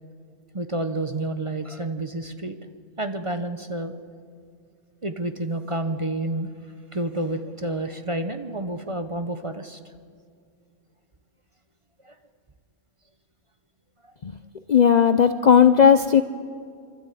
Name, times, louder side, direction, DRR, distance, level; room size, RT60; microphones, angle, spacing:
voice 1, 0.5-2.6 3.0-3.9 5.0-6.5 6.9-9.8 12.0-12.1, right 2 dB, 30° right, 8 dB, 0.7 m, -29 dB
voice 2, 14.7-16.2, left 7 dB, 85° left, 9 dB, 0.3 m, -15 dB
26.0 x 12.5 x 8.4 m, 2.2 s
omnidirectional pair, 1.5 m